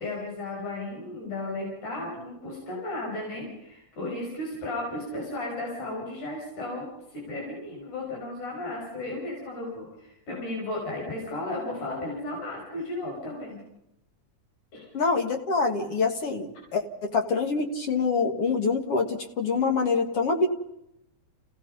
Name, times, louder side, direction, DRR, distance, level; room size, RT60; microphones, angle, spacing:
voice 1, 0.0-13.6 14.7-14.9, left 2 dB, 75° left, -2 dB, 7.0 m, -34 dB
voice 2, 14.9-20.5, left 4 dB, 55° left, 5 dB, 2.5 m, -25 dB
29.5 x 17.0 x 5.5 m, 0.81 s
omnidirectional pair, 3.5 m